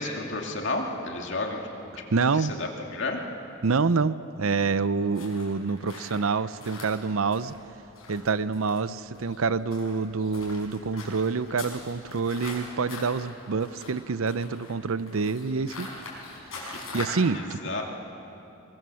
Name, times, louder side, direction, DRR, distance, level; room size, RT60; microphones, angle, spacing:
voice 1, 0.0-1.6 2.4-3.2 17.3-17.8, left 2 dB, 60° left, 1 dB, 2.5 m, -31 dB
voice 2, 2.1-2.5 3.6-7.5 8.1-15.9 16.5-17.6, right 4 dB, 80° right, 15 dB, 0.6 m, -27 dB
sound 1, 5.1-17.3, left 3 dB, 85° left, 5.8 m, -43 dB
22.0 x 22.0 x 7.0 m, 2.9 s
head